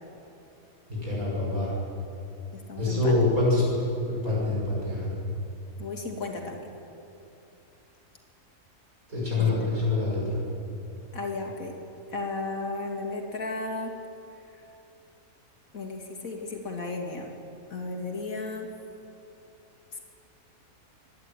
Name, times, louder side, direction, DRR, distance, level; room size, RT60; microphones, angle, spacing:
voice 1, 0.9-1.7 2.8-3.6 4.0-5.1 9.1-10.4, left 2 dB, 75° right, -5 dB, 6.7 m, -25 dB
voice 2, 2.5-3.1 5.8-6.7 9.4-9.7 11.1-11.7 12.1-13.9 15.7-17.3 17.7-18.7 19.9-20.0, left 3 dB, 70° left, 2 dB, 2.8 m, -34 dB
25.0 x 11.5 x 9.1 m, 2.8 s
omnidirectional pair, 1.5 m